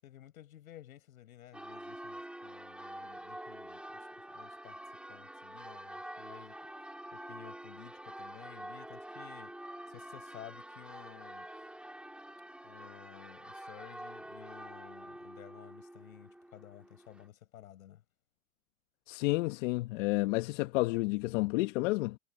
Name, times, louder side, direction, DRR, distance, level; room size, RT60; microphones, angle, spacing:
voice 1, 0.0-4.8 5.1-9.6 9.9-11.5 12.6-18.0, left 12 dB, 80° left, 6.6 m, -54 dB
Church bell, 1.5-17.3, right 1 dB, ahead, 1.9 m, -47 dB
voice 2, 19.1-22.2, left 22 dB, 60° left, 1.2 m, -30 dB
hypercardioid pair, 105°, 42 cm